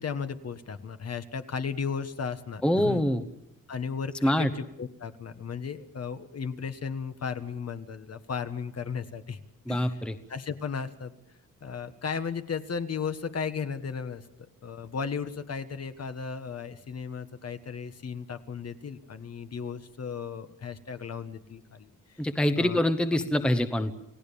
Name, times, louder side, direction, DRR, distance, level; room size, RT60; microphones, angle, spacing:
voice 1, 0.0-3.0 3.7-9.4 9.7-10.0 10.3-11.1 11.6-14.3 14.6-22.2 22.6-22.8, left 6 dB, 45° left, 9 dB, 1.5 m, -35 dB
voice 2, 2.6-3.2 4.2-4.5 9.7-10.1 22.2-23.9, left 1 dB, 5° left, 9 dB, 1.0 m, -25 dB
30.0 x 18.0 x 7.0 m, 0.84 s
wide cardioid pair, 175°, 35 cm